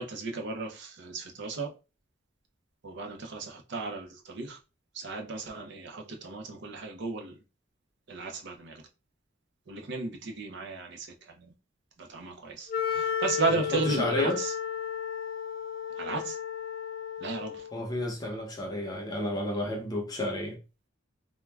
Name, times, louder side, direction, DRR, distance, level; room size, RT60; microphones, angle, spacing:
voice 1, 0.0-1.7 2.8-4.6 4.9-7.4 8.1-8.8 9.7-11.5 12.0-14.5 16.0-16.4 17.2-17.7, right 3 dB, 55° right, 0.5 m, -34 dB
Wind instrument woodwind instrument, 12.7-17.8, left 8 dB, 50° left, 0.3 m, -33 dB
voice 2, 13.7-14.4 17.7-20.6, left 1 dB, 20° left, 0.7 m, -31 dB
2.3 x 2.1 x 3.2 m
head